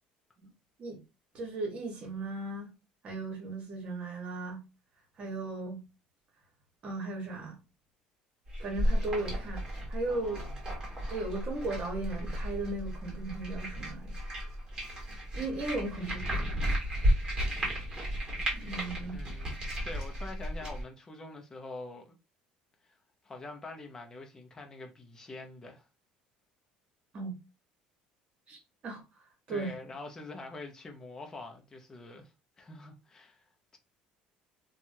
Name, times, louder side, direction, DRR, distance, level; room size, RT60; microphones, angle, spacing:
voice 1, 1.3-2.7 3.0-4.6 5.2-5.8 6.8-7.6 8.6-10.4 11.1-14.1 15.3-16.5 18.5-19.2 27.1-27.3 28.5-28.6 28.8-29.0 29.5-29.7, right 2 dB, 40° right, 1.3 m, -36 dB
sound 1, 8.5-20.8, equal, 25° right, 1.5 m, -33 dB
voice 2, 10.1-10.6 19.0-22.2 22.8-22.9 23.2-25.9 29.5-32.3 32.6-33.5, left 2 dB, 20° left, 0.7 m, -45 dB
2.9 x 2.3 x 2.7 m
cardioid pair, 120°, 3 cm